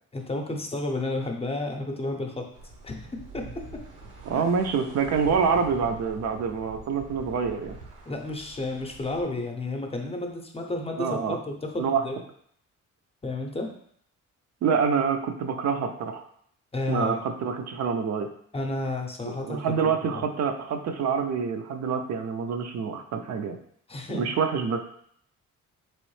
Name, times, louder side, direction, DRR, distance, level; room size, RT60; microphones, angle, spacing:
voice 1, 0.1-2.5 2.8-3.8 4.3-4.4 8.1-12.1 13.2-13.7 16.7-17.2 18.5-20.2 23.9-24.3, left 2 dB, 20° left, 2 dB, 0.6 m, -32 dB
sound 1, 2.5-9.2, right 3 dB, 85° right, 1.0 m, -44 dB
voice 2, 4.3-7.8 11.0-11.4 11.8-12.0 14.6-16.2 16.9-18.3 19.2-23.6 24.1-24.9, right 6 dB, 60° right, 5 dB, 0.5 m, -26 dB
3.6 x 3.1 x 3.1 m, 0.65 s
cardioid pair, 90°, 30 cm